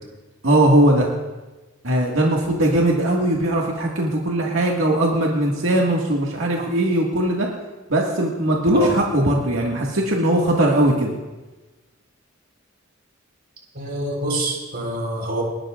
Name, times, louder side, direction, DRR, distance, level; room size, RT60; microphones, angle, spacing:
voice 1, 0.4-1.1 1.8-7.5 7.9-11.1, right 1 dB, 85° right, -2 dB, 1.9 m, -19 dB
voice 2, 13.7-15.4, right 1 dB, 55° right, 0 dB, 4.1 m, -26 dB
30.0 x 13.0 x 2.5 m, 1.2 s
head